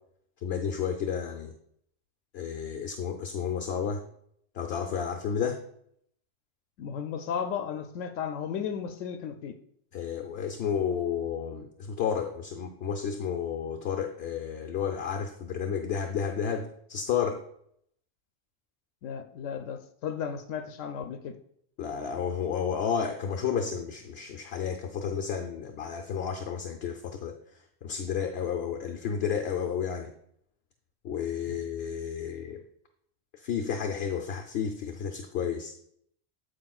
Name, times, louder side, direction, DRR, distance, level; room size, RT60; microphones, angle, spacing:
voice 1, 0.4-1.5 2.3-4.0 4.5-5.6 9.9-17.4 21.8-30.1 31.0-32.6 33.3-35.7, left 7 dB, 65° left, 4 dB, 0.8 m, -31 dB
voice 2, 6.8-9.6 19.0-21.4 31.5-31.6, left 7 dB, 90° left, 6 dB, 0.9 m, -34 dB
13.5 x 4.9 x 2.3 m, 0.69 s
omnidirectional pair, 1.2 m